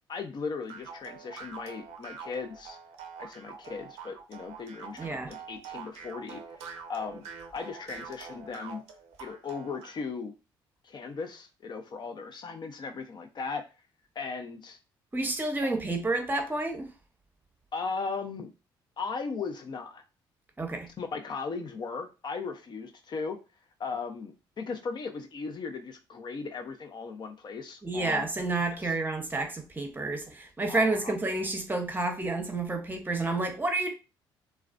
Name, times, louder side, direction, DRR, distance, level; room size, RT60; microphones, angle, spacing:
voice 1, 0.1-2.8 3.2-7.3 7.5-8.8 9.2-10.3 10.8-13.6 14.2-14.8 15.6-15.7 17.7-18.5 19.0-20.0 21.0-23.4 23.8-28.2 30.7-31.1, left 4 dB, 45° left, 5 dB, 0.5 m, -37 dB
sound 1, 0.7-10.0, right 6 dB, 80° right, 0.5 m, -45 dB
voice 2, 5.0-5.3 15.1-16.9 20.6-20.9 27.8-33.9, right 2 dB, 20° right, 5 dB, 0.7 m, -30 dB
2.4 x 2.1 x 2.4 m, 0.29 s
supercardioid pair, 60°, 10 cm